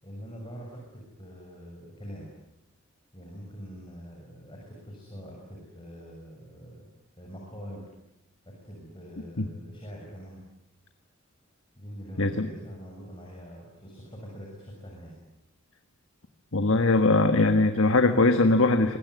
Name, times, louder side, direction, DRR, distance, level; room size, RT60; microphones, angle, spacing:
voice 1, 0.0-2.3 3.1-6.9 7.2-7.9 8.5-10.4 11.8-15.2, equal, 25° left, -1 dB, 6.5 m, -44 dB
voice 2, 16.5-19.0, left 2 dB, 70° left, 7 dB, 1.5 m, -21 dB
25.5 x 21.0 x 9.5 m, 0.89 s
head